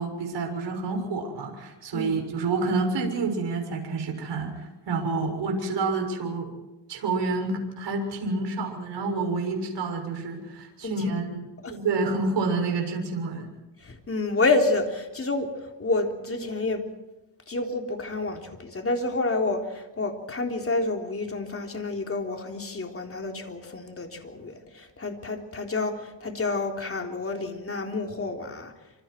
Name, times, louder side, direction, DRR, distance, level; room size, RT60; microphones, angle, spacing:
voice 1, 0.0-6.5 6.9-13.5, right 3 dB, 70° right, 2 dB, 6.8 m, -28 dB
voice 2, 10.8-11.2 11.6-11.8 13.8-16.8 17.5-28.7, left 3 dB, 30° left, 3 dB, 3.7 m, -29 dB
27.5 x 26.5 x 4.6 m, 1.1 s
cardioid pair, 120°, 43 cm